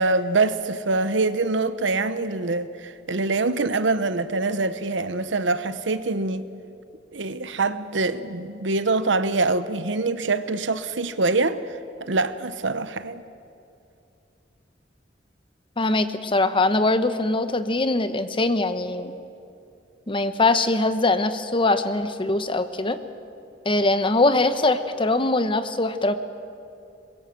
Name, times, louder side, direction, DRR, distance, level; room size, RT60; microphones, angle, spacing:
voice 1, 0.0-6.5 7.1-11.6 12.0-13.2, right 3 dB, 85° right, 1.0 m, -24 dB
voice 2, 15.8-19.2 20.1-23.0 23.6-26.1, left 2 dB, 30° left, 1.0 m, -22 dB
23.5 x 21.5 x 7.7 m
head